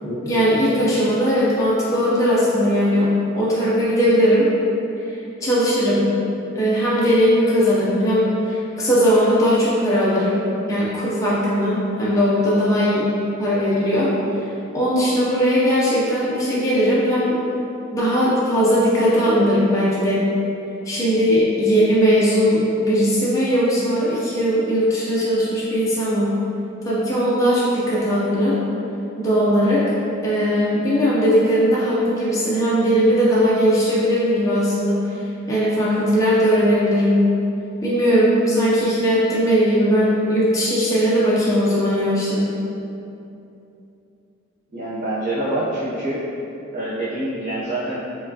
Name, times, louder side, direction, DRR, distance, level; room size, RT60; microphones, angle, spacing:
voice 1, 0.0-4.5 5.0-6.0 6.5-10.4 10.7-13.1 13.4-14.1 14.7-17.4 17.9-20.2 20.9-26.3 26.8-28.5 29.2-29.8 30.2-35.1 35.5-37.2 37.8-42.4, equal, 15° left, -8 dB, 0.4 m, -19 dB
voice 2, 44.7-46.3 46.7-48.0, right 1 dB, 45° right, -11 dB, 0.6 m, -25 dB
4.4 x 2.2 x 2.6 m, 2.8 s
head